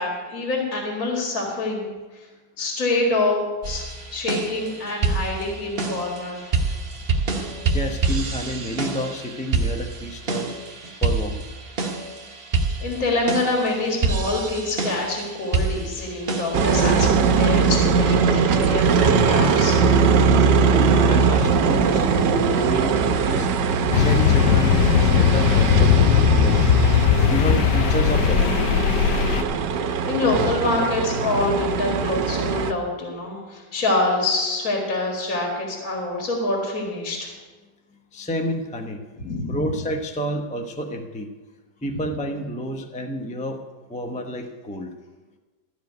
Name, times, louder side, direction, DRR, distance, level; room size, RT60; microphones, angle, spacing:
voice 1, 0.0-1.9 2.1-2.3 2.6-6.8 12.8-19.8 30.1-37.3 39.2-39.4, left 2 dB, 50° left, -1 dB, 2.4 m, -25 dB
sound 1, 3.6-17.1, right 3 dB, 40° right, 1.1 m, -27 dB
voice 2, 7.7-10.5 11.0-11.4 20.7-23.5 23.9-26.7 27.3-28.6 38.1-39.0 39.5-41.3 41.8-43.6 43.9-44.9, equal, 10° left, 4 dB, 0.3 m, -29 dB
sound 2, 16.5-32.7, right 5 dB, 85° right, 1.4 m, -20 dB
sound 3, 23.9-29.4, left 9 dB, 75° left, 1.2 m, -18 dB
13.5 x 5.1 x 9.3 m, 1.3 s
omnidirectional pair, 1.9 m